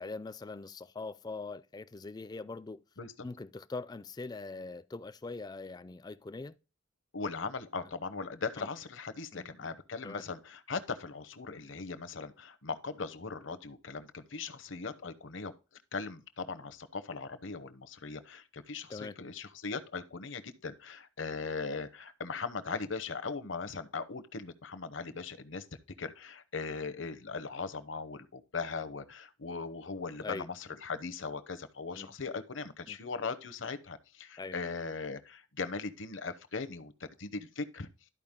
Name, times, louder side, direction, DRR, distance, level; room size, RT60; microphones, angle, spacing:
voice 1, 0.0-2.8 3.2-6.6 8.6-8.7 9.3-9.5 10.0-10.2 18.9-19.2 30.2-30.5 31.9-32.1 32.9-33.0 34.4-34.6, left 3 dB, 20° left, 0.3 m, -42 dB
voice 2, 7.1-15.5 15.9-25.6 26.0-36.9 37.2-37.9, left 4 dB, 65° left, 0.8 m, -39 dB
12.5 x 4.7 x 3.6 m
head